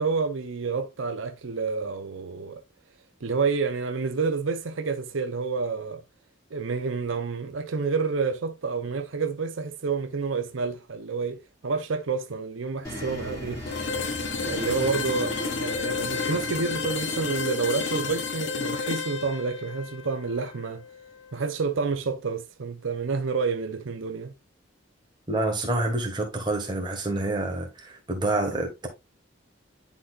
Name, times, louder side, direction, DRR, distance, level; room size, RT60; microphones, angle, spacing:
voice 1, 0.0-2.6 3.2-6.0 6.5-13.6 14.4-20.8 21.3-24.3, right 4 dB, 85° right, 0.7 m, -29 dB
sound 1, 12.8-19.3, equal, 15° left, 2.2 m, -38 dB
sound 2, 13.7-21.5, left 5 dB, 75° left, 1.0 m, -32 dB
voice 2, 25.3-28.9, right 2 dB, 25° right, 1.5 m, -27 dB
10.0 x 4.1 x 2.4 m
head